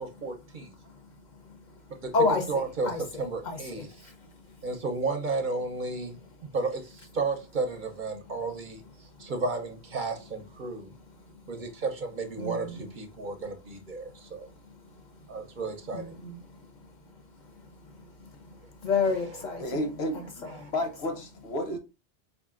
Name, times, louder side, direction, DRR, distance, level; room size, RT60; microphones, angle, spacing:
voice 1, 0.0-0.7 2.0-2.1 2.5-2.9 3.2-4.1 4.6-10.9 11.5-14.5 15.3-16.1 18.5-18.6 20.6-20.7, right 3 dB, 55° right, 0.7 m, -33 dB
voice 2, 0.8-4.7 6.4-6.5 9.2-9.3 10.9-11.4 12.4-12.9 14.0-15.6 15.9-20.7, left 4 dB, 55° left, 0.6 m, -34 dB
voice 3, 19.6-20.5 20.7-21.8, left 1 dB, 80° left, 1.0 m, -31 dB
4.7 x 2.5 x 2.4 m
omnidirectional pair, 1.1 m